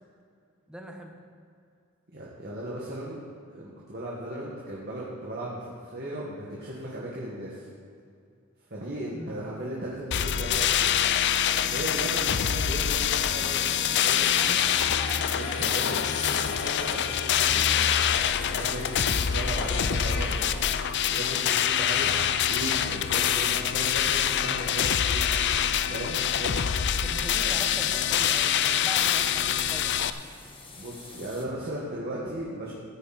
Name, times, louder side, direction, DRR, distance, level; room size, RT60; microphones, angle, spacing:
voice 1, 0.7-1.2 9.1-9.4 27.0-30.1, right 1 dB, 5° right, 2 dB, 1.2 m, -41 dB
voice 2, 2.1-3.2 3.5-7.7 8.7-10.9 11.6-14.6 15.4-17.7 18.5-20.5 21.1-22.1 22.5-25.3 25.9-26.6 27.4-27.5 30.8-32.7, right 1 dB, 50° right, -5 dB, 2.0 m, -37 dB
sound 1, 10.1-30.1, left 9 dB, 55° left, 0.5 m, -25 dB
sound 2, 11.6-31.4, left 3 dB, 25° left, 1.4 m, -43 dB
15.0 x 9.6 x 4.4 m, 2.3 s
head